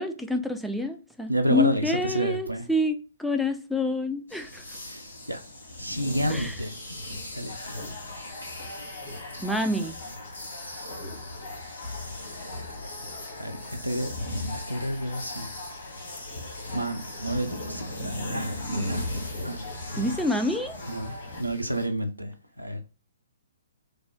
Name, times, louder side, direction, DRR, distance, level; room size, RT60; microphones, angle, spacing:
voice 1, 0.0-4.6 6.3-6.5 9.4-10.0 20.0-20.8, left 1 dB, ahead, 0.3 m, -27 dB
voice 2, 1.3-2.7 4.8-5.4 5.8-6.8 7.3-7.7 10.6-11.1 13.4-13.6 13.8-14.2 14.7-15.5 16.7-18.6 18.9-19.1 19.4-20.1 20.8-22.8, right 1 dB, 85° right, 0.4 m, -30 dB
sound 1, 4.3-21.8, left 1 dB, 70° left, 1.3 m, -37 dB
sound 2, 4.3-21.4, left 3 dB, 50° left, 1.2 m, -44 dB
3.3 x 2.1 x 3.4 m
figure-of-eight pair, 125°, 0 cm